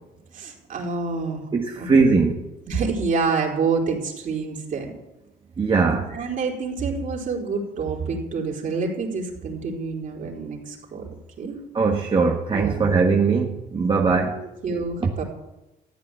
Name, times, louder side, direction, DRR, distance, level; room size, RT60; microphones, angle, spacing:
voice 1, 0.3-1.4 1.8-1.9 2.7-4.9 6.1-11.1 11.4-11.6 12.5-12.9 14.3-15.2, right 4 dB, 50° right, -1 dB, 4.4 m, -27 dB
voice 2, 1.5-2.5 5.6-6.2 11.7-14.4, right 4 dB, 30° right, 1 dB, 1.5 m, -20 dB
14.5 x 8.8 x 8.8 m, 0.98 s
cardioid pair, 110°, 17 cm